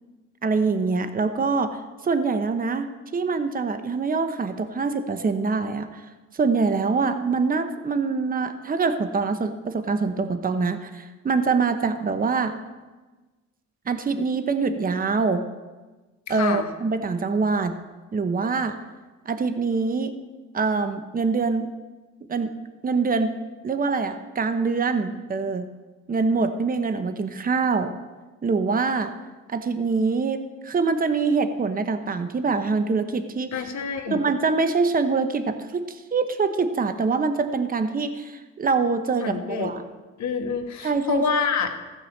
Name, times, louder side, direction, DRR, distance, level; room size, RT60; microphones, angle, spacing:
voice 1, 0.4-1.8 2.0-6.0 6.3-12.5 13.9-15.4 16.3-17.7 18.1-18.8 19.3-20.2 20.5-21.7 22.3-22.5 22.8-23.3 23.6-25.6 26.1-27.9 28.4-29.1 29.5-30.4 30.6-33.5 34.1-39.8 40.8-41.2, right 4 dB, 30° right, 9 dB, 0.9 m, -24 dB
voice 2, 16.3-16.7 33.5-34.2 39.2-39.7 40.2-41.7, left 5 dB, 65° left, 4 dB, 1.5 m, -27 dB
14.5 x 4.9 x 7.1 m, 1.2 s
cardioid pair, 90°, 30 cm